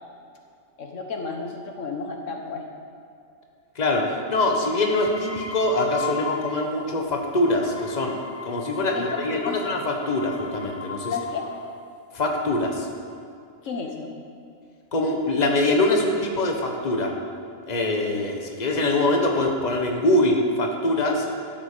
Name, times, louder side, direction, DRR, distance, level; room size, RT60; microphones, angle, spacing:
voice 1, 0.8-2.6 8.9-9.0 9.3-9.6 11.0-11.4 13.6-14.1, left 4 dB, 70° left, 2 dB, 1.5 m, -32 dB
voice 2, 4.3-8.2 8.4-11.1 12.1-12.9 14.9-17.1 17.7-21.3, left 2 dB, 35° left, 1 dB, 1.4 m, -23 dB
sound 1, 4.4-6.9 7.3-11.8 12.6-13.1, left 6 dB, 20° left, 0.4 m, -37 dB
13.0 x 7.8 x 6.8 m, 2.4 s
omnidirectional pair, 1.4 m